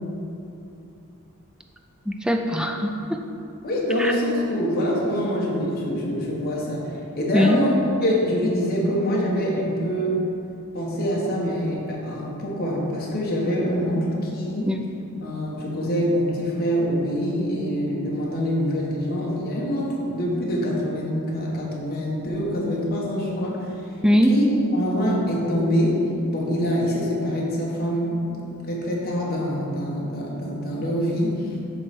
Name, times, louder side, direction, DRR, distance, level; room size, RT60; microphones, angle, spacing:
voice 1, 2.1-3.2 4.0-4.1 7.3-7.6 14.6-14.8 24.0-24.4, equal, 5° right, 3 dB, 0.4 m, -21 dB
voice 2, 3.6-7.7 8.0-10.2 10.7-14.7 15.2-23.7 24.3-24.4 24.7-31.5, equal, 45° left, -4 dB, 1.2 m, -25 dB
7.8 x 3.2 x 5.9 m, 2.7 s
head